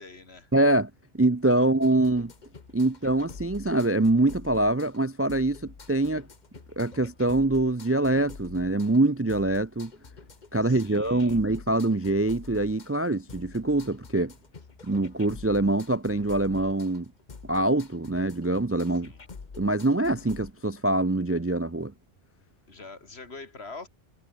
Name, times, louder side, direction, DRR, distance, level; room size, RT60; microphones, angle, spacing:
voice 1, 0.0-0.5 1.6-1.7 10.6-11.4 19.0-19.2 22.7-23.9, left 3 dB, 70° left, 2.8 m, -44 dB
voice 2, 0.5-2.3 2.7-6.3 6.8-9.9 10.5-14.3 14.8-17.1 17.5-19.1 19.6-21.9, right 2 dB, 20° right, 0.4 m, -24 dB
sound 1, 1.8-20.5, left 4 dB, 45° left, 1.4 m, -47 dB
omnidirectional pair, 1.1 m